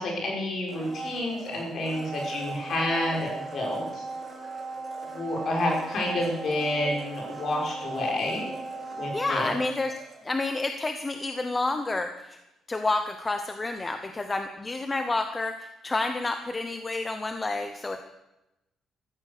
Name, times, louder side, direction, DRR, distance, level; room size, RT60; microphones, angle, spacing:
voice 1, 0.0-4.0 5.1-8.5 8.9-9.5, left 1 dB, 45° left, -1 dB, 5.7 m, -29 dB
Domestic sounds home sounds, 0.7-10.6 10.9-11.0, right 3 dB, 15° right, 3.9 m, -38 dB
voice 2, 9.1-9.9 10.2-12.4 12.7-18.1, left 2 dB, 15° left, 7 dB, 0.8 m, -29 dB
14.5 x 14.0 x 6.7 m, 0.91 s
cardioid pair, 175°, 0 cm